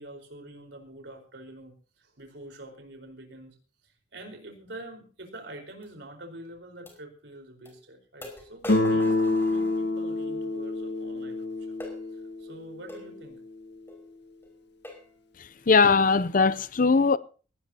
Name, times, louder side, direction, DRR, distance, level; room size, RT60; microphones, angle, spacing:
voice 1, 0.0-3.5 3.8-11.8 12.1-13.4, right 1 dB, 70° right, 4.6 m, -46 dB
sound 1, 5.8-5.9 6.9-7.0 7.7-7.8 8.2-10.2 11.8-12.0 12.9-13.1 13.9-14.0 14.4-14.5 14.8-15.1 15.7-15.9, left 1 dB, 15° left, 5.5 m, -42 dB
Guitar, 8.7-13.5, left 2 dB, 65° left, 1.7 m, -28 dB
voice 2, 15.7-17.2, left 4 dB, 45° left, 0.7 m, -20 dB
19.0 x 17.5 x 2.9 m
head